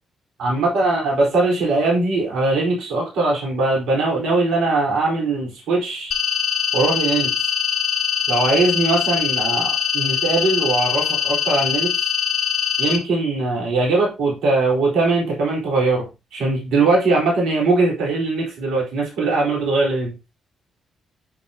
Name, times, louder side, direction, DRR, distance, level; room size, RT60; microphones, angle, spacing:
voice 1, 0.4-6.1 6.7-7.3 8.3-11.9 12.8-16.1 16.3-20.1, right 3 dB, 80° right, -2 dB, 4.2 m, -20 dB
sound 1, 6.1-13.0, left 9 dB, 60° left, 1.8 m, -22 dB
9.0 x 6.0 x 2.9 m, 0.26 s
hypercardioid pair, 45°, 0 cm